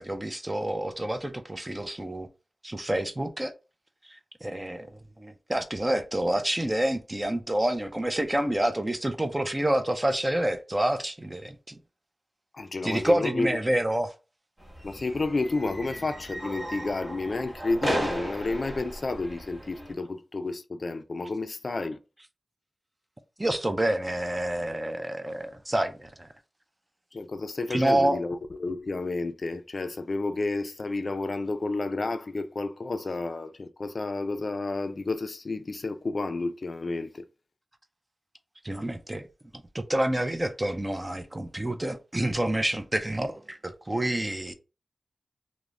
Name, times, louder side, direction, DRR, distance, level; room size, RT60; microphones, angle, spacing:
voice 1, 0.0-2.3 2.6-3.5 4.1-11.8 12.8-14.1 23.4-26.3 27.7-28.2 38.6-39.2 39.7-44.5, right 1 dB, 20° right, 0.4 m, -28 dB
voice 2, 12.5-13.5 14.8-22.0 27.1-37.2, left 3 dB, 60° left, 0.3 m, -31 dB
sound 1, 14.6-19.9, equal, 40° right, 1.1 m, -35 dB
2.4 x 2.0 x 3.1 m
wide cardioid pair, 70°, 0 cm